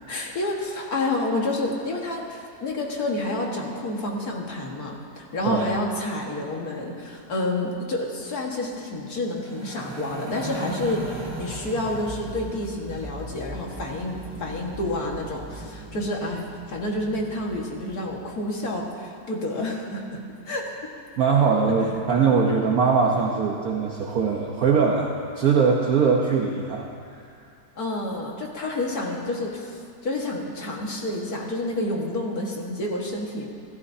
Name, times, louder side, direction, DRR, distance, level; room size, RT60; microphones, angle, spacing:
voice 1, 0.1-20.9 27.8-33.5, left 2 dB, 60° left, -1 dB, 2.2 m, -29 dB
sound 1, 9.3-18.7, right 2 dB, 20° right, 0.9 m, -38 dB
voice 2, 21.2-25.1 25.4-27.3, right 5 dB, 60° right, -1 dB, 1.4 m, -21 dB
27.5 x 13.5 x 2.8 m, 2.3 s
omnidirectional pair, 1.8 m